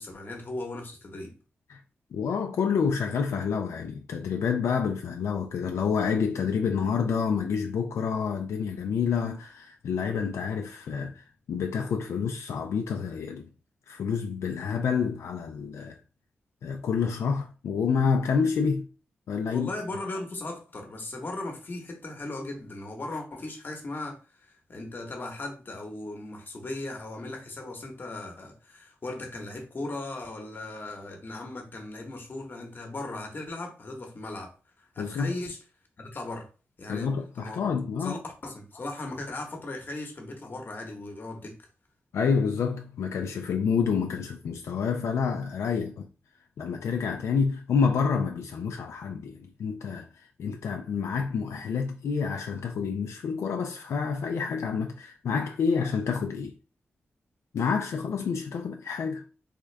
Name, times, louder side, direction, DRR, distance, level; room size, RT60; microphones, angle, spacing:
voice 1, 0.0-1.3 19.5-35.6 36.0-36.5 36.8-37.1 37.4-37.6 38.0-41.7, left 2 dB, 45° left, 1.0 m, -37 dB
voice 2, 2.1-13.5 13.9-16.0 16.6-18.9 19.3-19.7 35.0-35.4 36.9-38.2 42.1-46.1 46.6-50.1 50.4-56.5 57.5-59.2, left 6 dB, 90° left, 0.4 m, -28 dB
3.6 x 2.3 x 3.2 m
cardioid pair, 85°, 5 cm